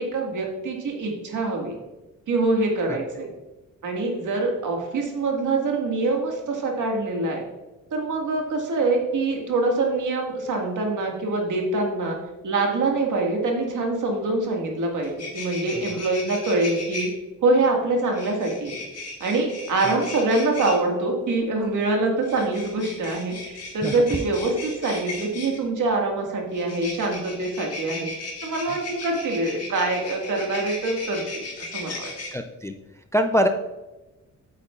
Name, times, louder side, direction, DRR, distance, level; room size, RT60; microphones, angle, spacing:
voice 1, 0.0-1.8 2.3-3.3 3.8-7.4 7.9-12.2 12.4-17.1 17.4-18.8 19.2-28.1 28.4-31.5 31.7-32.1, right 2 dB, 70° right, 1 dB, 1.8 m, -24 dB
sound 1, 14.7-14.8 15.0-17.1 18.1-20.8 22.2-25.6 26.5-32.3, left 3 dB, 50° left, 1.8 m, -36 dB
voice 2, 32.3-32.7 33.1-33.5, equal, 10° left, 7 dB, 0.3 m, -22 dB
8.9 x 8.2 x 2.4 m, 1.1 s
wide cardioid pair, 155°, 32 cm